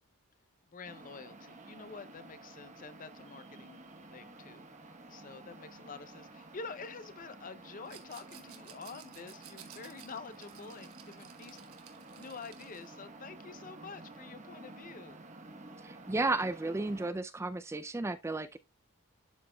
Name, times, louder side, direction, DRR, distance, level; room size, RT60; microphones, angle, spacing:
voice 1, 0.7-3.8 4.1-11.6 12.2-15.2, left 4 dB, 40° left, 0.6 m, -48 dB
sound 1, 0.8-17.1, right 2 dB, 35° right, 1.0 m, -51 dB
Rattle, 7.8-12.9, right 10 dB, 80° right, 1.3 m, -55 dB
voice 2, 15.8-18.6, right 2 dB, 10° right, 0.3 m, -33 dB
11.5 x 5.0 x 2.2 m
head